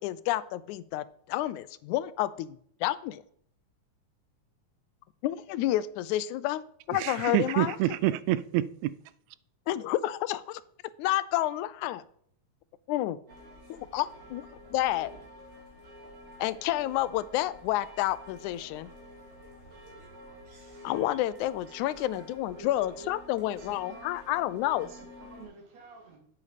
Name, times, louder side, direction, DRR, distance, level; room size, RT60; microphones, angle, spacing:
voice 1, 0.0-3.2 5.2-6.6 6.9-7.8 9.7-10.6 11.0-12.0 12.9-13.2 13.7-15.1 16.4-18.9 20.8-24.9, left 14 dB, 85° left, 2.0 m, -30 dB
voice 2, 6.9-8.9, right 15 dB, 80° right, 1.8 m, -27 dB
sound 1, 13.3-25.5, left 1 dB, 45° right, 3.6 m, -50 dB
voice 3, 20.8-21.2 21.7-21.9 22.5-23.1 23.4-24.4 24.7-26.2, right 4 dB, 65° right, 3.6 m, -49 dB
8.7 x 8.5 x 5.0 m
omnidirectional pair, 3.4 m